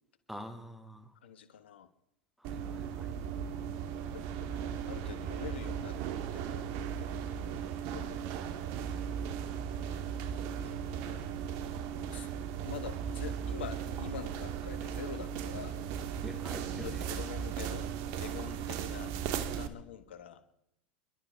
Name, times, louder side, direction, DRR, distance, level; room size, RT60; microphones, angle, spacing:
voice 1, 0.3-1.1 2.4-3.1 16.2-16.9, equal, ahead, 7 dB, 2.1 m, -45 dB
voice 2, 1.2-1.9 3.9-6.0 6.3-8.2 9.6-11.3 11.9-12.3 12.6-15.8 16.7-17.9 18.2-20.4, left 9 dB, 80° left, 11 dB, 1.4 m, -46 dB
sound 1, 2.4-19.7, right 8 dB, 55° right, 1.5 m, -37 dB
26.5 x 12.0 x 3.5 m, 0.80 s
hypercardioid pair, 95°, 6 cm